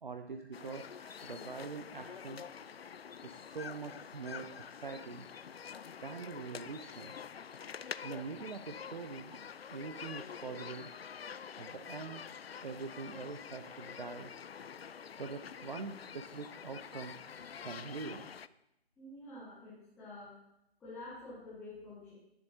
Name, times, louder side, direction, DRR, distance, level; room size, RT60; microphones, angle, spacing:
voice 1, 0.0-0.9 1.2-2.4 3.2-5.3 6.0-7.2 8.0-9.4 9.7-10.9 11.6-12.2 12.6-14.3 15.2-17.1 17.6-18.2, right 4 dB, 50° right, 7 dB, 0.6 m, -44 dB
sound 1, 0.5-18.5, left 7 dB, 65° left, 0.5 m, -47 dB
voice 2, 19.0-20.3 20.8-22.1, left 2 dB, ahead, -13 dB, 0.6 m, -48 dB
17.5 x 7.3 x 2.8 m, 0.83 s
figure-of-eight pair, 145°, 33 cm